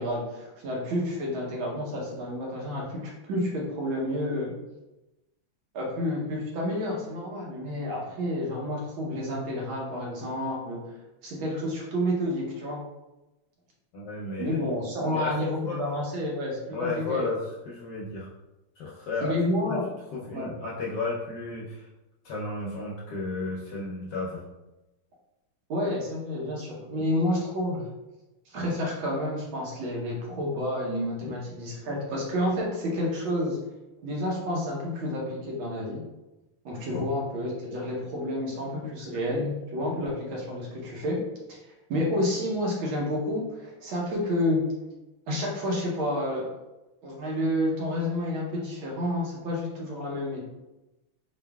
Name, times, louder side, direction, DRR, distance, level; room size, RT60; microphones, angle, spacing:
voice 1, 0.0-4.6 5.7-10.8 11.2-12.8 14.4-17.3 19.2-19.9 20.3-20.5 25.7-27.8 28.5-33.6 34.0-36.0 36.6-41.2 41.5-44.7 45.3-46.5 47.0-50.5, left 1 dB, 70° right, -2 dB, 1.6 m, -30 dB
voice 2, 13.9-14.7 15.0-15.8 16.7-18.3 18.8-19.3 19.6-19.8 20.1-21.9 22.2-24.4 26.9-27.0 36.9-37.1, left 3 dB, 65° left, -5 dB, 1.1 m, -33 dB
4.0 x 3.8 x 2.3 m, 1.0 s
omnidirectional pair, 2.4 m